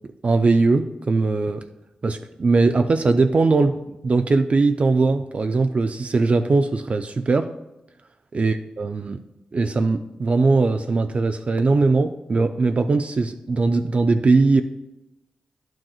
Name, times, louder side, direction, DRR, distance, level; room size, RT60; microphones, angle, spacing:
voice 1, 0.2-1.6 2.0-7.5 8.3-9.2 9.5-14.6, right 3 dB, 50° right, 7 dB, 0.4 m, -20 dB
10.5 x 6.1 x 2.4 m, 0.94 s
cardioid pair, 50°, 3 cm